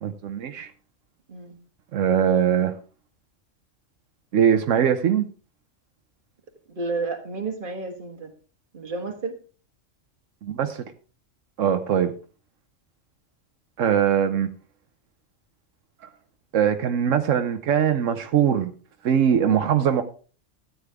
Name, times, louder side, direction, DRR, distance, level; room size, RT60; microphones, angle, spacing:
voice 1, 0.0-0.7 1.9-2.7 4.3-5.3 10.4-10.8 11.6-12.1 13.8-14.5 16.5-18.7 19.0-20.0, right 8 dB, 80° right, 8 dB, 1.1 m, -21 dB
voice 2, 6.7-8.3 8.7-9.3, right 3 dB, 45° right, 5 dB, 1.7 m, -31 dB
13.0 x 8.8 x 3.5 m, 0.38 s
omnidirectional pair, 1.3 m